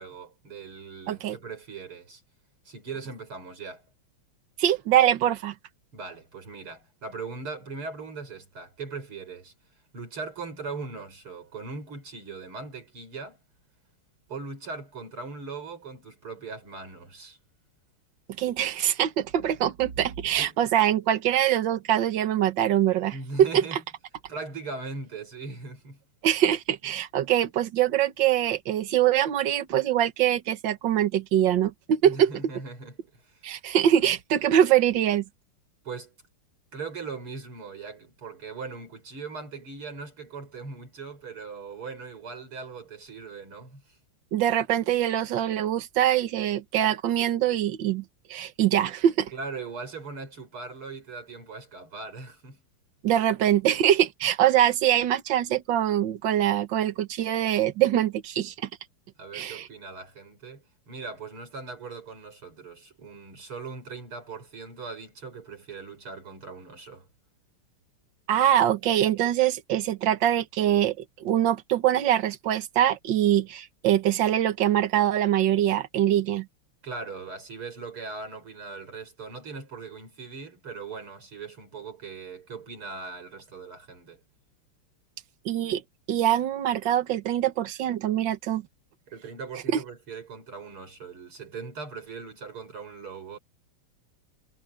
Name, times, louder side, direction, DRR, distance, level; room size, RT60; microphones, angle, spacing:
voice 1, 0.0-2.2 2.6-3.9 5.9-9.5 9.9-13.4 14.3-17.4 20.4-20.6 23.1-23.8 24.3-26.0 32.0-33.4 35.8-36.1 36.7-44.0 48.8-48.9 49.3-52.6 59.2-67.1 76.8-84.2 89.1-93.4, right 4 dB, 75° right, 6.4 m, -39 dB
voice 2, 4.6-5.5 18.4-23.5 26.2-32.3 33.4-35.2 44.3-48.0 48.3-49.3 53.0-58.7 59.3-59.7 68.3-71.0 71.2-76.5 85.5-85.8 86.1-88.6 89.7-89.8, right 11 dB, 60° right, 1.8 m, -23 dB
omnidirectional pair, 2.4 m